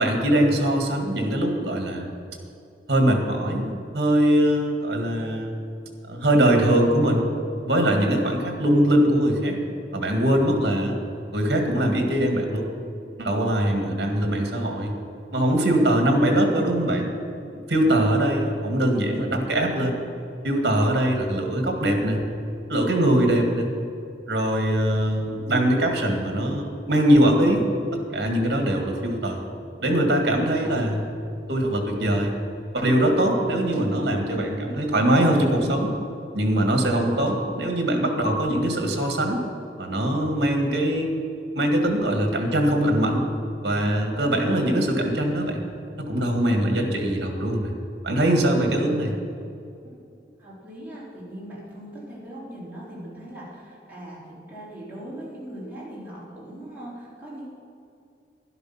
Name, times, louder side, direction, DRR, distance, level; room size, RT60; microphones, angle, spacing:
voice 1, 0.0-2.1 2.9-5.5 6.1-7.3 7.6-9.6 9.9-11.0 11.3-12.7 13.2-14.9 15.3-17.1 17.5-20.0 20.4-22.2 22.7-23.7 24.3-27.6 27.9-29.4 29.8-31.1 31.5-32.4 32.7-35.9 36.3-39.4 39.8-41.1 41.5-43.3 43.6-45.6 46.0-47.7 48.0-49.2, right 1 dB, 65° right, 3 dB, 1.9 m, -22 dB
voice 2, 50.4-57.5, right 1 dB, 10° right, -8 dB, 3.7 m, -40 dB
12.0 x 11.0 x 5.8 m, 2.5 s
head